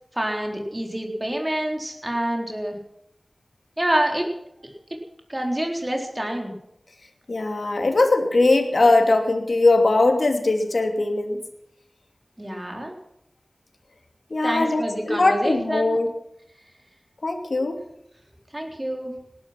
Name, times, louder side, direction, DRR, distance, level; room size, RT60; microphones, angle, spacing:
voice 1, 0.2-2.8 3.8-4.3 5.3-6.5 12.4-12.9 14.4-16.0 18.5-19.1, right 1 dB, 25° right, 1 dB, 3.8 m, -27 dB
voice 2, 7.3-11.4 14.3-16.1 17.2-17.8, left 2 dB, 75° left, 4 dB, 2.8 m, -20 dB
19.0 x 12.0 x 6.0 m, 0.79 s
wide cardioid pair, 50°, 0 cm